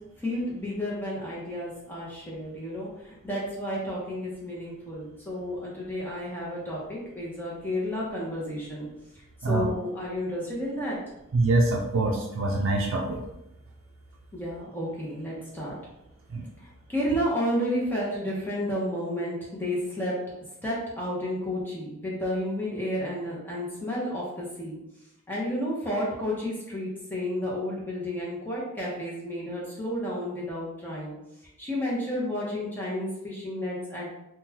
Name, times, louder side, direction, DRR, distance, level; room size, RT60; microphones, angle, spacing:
voice 1, 0.0-8.9 9.5-11.0 14.3-15.8 16.9-20.4 20.6-24.8 25.3-31.1 31.6-34.1, equal, 10° left, -6 dB, 0.8 m, -31 dB
voice 2, 11.3-13.2 16.3-16.4, right 2 dB, 75° right, -1 dB, 0.4 m, -24 dB
3.7 x 2.2 x 2.8 m, 0.87 s
head